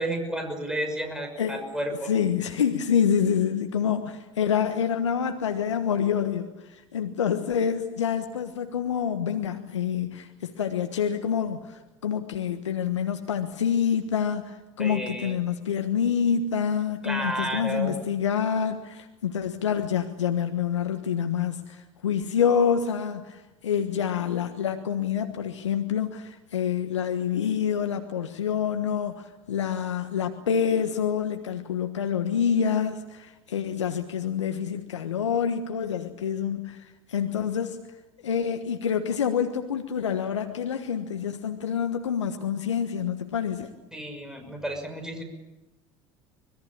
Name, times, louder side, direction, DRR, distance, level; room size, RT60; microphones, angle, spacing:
voice 1, 0.0-2.1 14.8-15.3 17.0-17.9 43.9-45.2, right 1 dB, 5° right, 3 dB, 6.2 m, -31 dB
voice 2, 2.0-37.8 38.2-43.7, left 7 dB, 85° left, 7 dB, 1.3 m, -27 dB
25.5 x 21.0 x 8.6 m, 1.1 s
hypercardioid pair, 75°, 15 cm